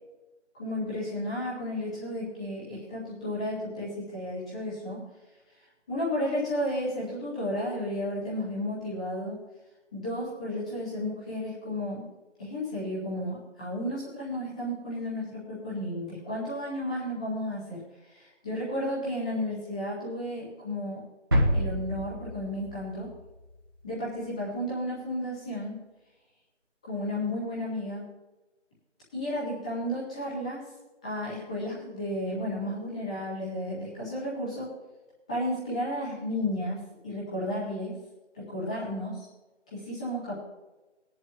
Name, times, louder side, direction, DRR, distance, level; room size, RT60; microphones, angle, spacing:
voice 1, 0.6-5.0 5.9-9.4 9.9-12.0 12.4-17.8 18.1-21.0 21.5-23.1 23.8-25.8 26.8-28.1 29.1-30.6 31.0-34.7 35.3-36.8 37.0-38.0 38.3-39.3 39.7-40.4, left 1 dB, 5° left, -9 dB, 1.6 m, -33 dB
sound 1, 21.3-23.1 23.4-23.5, equal, 20° right, 1.6 m, -27 dB
18.5 x 10.5 x 3.0 m, 1.1 s
figure-of-eight pair, 170°, 36 cm